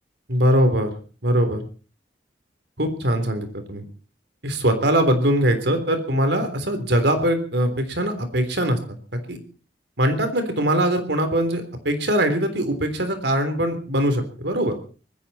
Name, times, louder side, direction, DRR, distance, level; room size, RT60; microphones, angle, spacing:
voice 1, 0.3-0.9 1.2-1.6 2.8-3.8 4.4-9.4 10.0-14.7, right 1 dB, 75° right, 8 dB, 3.6 m, -22 dB
20.0 x 15.5 x 4.3 m, 0.39 s
head